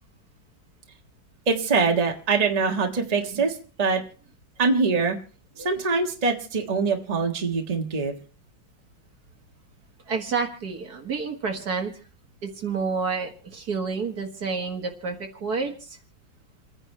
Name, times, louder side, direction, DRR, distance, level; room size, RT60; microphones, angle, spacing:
voice 1, 1.5-4.0 4.6-5.2 5.6-8.1, right 4 dB, 20° right, 2 dB, 1.4 m, -23 dB
voice 2, 10.1-11.9 12.4-15.9, right 5 dB, 55° right, 4 dB, 2.0 m, -29 dB
29.0 x 9.9 x 3.3 m, 0.37 s
omnidirectional pair, 2.1 m